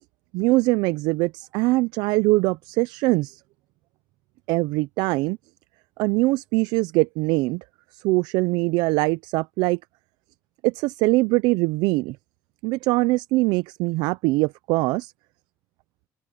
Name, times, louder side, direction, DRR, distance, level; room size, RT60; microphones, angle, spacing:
voice 1, 0.3-3.4 4.5-5.4 6.0-7.6 7.9-9.8 10.6-12.2 12.6-15.1, right 22 dB, 85° right, 0.4 m, -22 dB
open air
cardioid pair, 90°, 7 cm